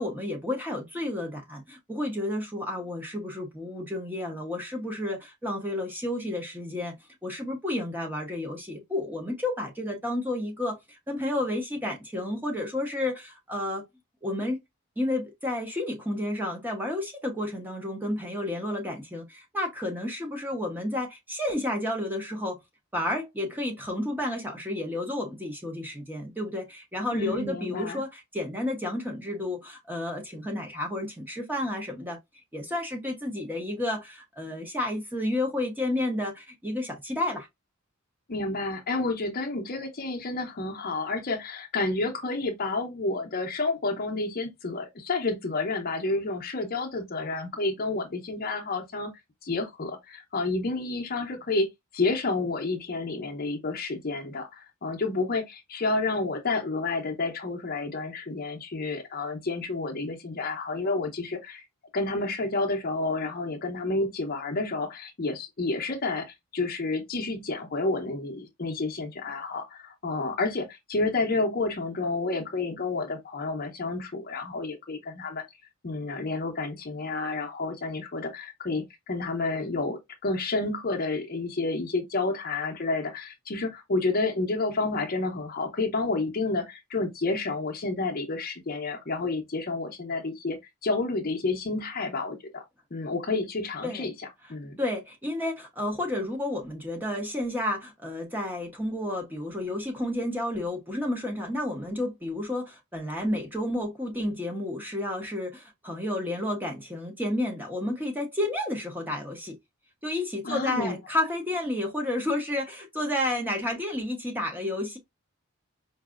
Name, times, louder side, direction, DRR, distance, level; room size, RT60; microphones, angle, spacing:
voice 1, 0.0-6.9 7.2-10.8 11.1-13.8 14.2-14.6 15.0-22.6 22.9-32.2 32.5-37.5 93.8-94.1 94.8-109.6 110.0-115.0, left 1 dB, 10° right, 0.8 m, -31 dB
voice 2, 27.1-28.0 38.3-49.1 49.4-51.7 51.9-61.6 61.9-75.4 75.8-90.6 90.8-92.6 92.9-94.8 110.4-111.0, left 3 dB, 40° left, 0.7 m, -30 dB
4.7 x 2.6 x 2.4 m
head